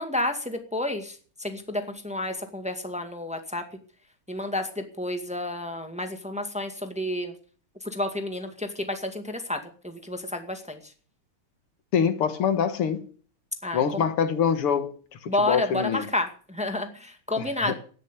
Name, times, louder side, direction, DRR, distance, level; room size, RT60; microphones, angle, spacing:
voice 1, 0.0-3.6 4.3-7.3 7.8-10.9 13.6-14.0 15.3-17.7, left 1 dB, 5° right, 1.8 m, -30 dB
voice 2, 11.9-13.0 13.7-15.0 15.2-16.1 17.4-17.7, left 7 dB, 90° left, 2.5 m, -25 dB
13.0 x 10.5 x 8.3 m
omnidirectional pair, 2.4 m